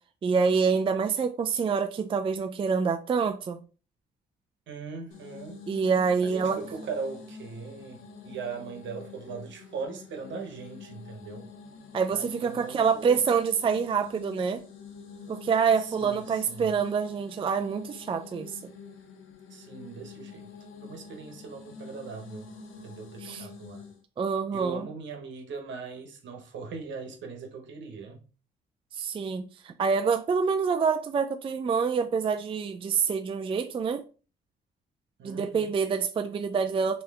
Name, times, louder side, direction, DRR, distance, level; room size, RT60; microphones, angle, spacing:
voice 1, 0.2-3.6 5.7-6.6 11.9-14.6 15.3-18.6 23.2-23.5 24.2-24.8 28.9-34.0 35.2-37.0, right 5 dB, 25° right, 0.4 m, -26 dB
voice 2, 4.7-5.6 6.2-11.5 12.1-13.2 15.8-16.8 19.5-20.5 20.8-22.5 22.8-23.9 24.5-28.2 35.2-35.7, right 5 dB, 70° right, 1.1 m, -40 dB
sound 1, 5.1-24.0, left 4 dB, 85° left, 0.8 m, -46 dB
3.2 x 3.0 x 3.4 m
cardioid pair, 90°, 20 cm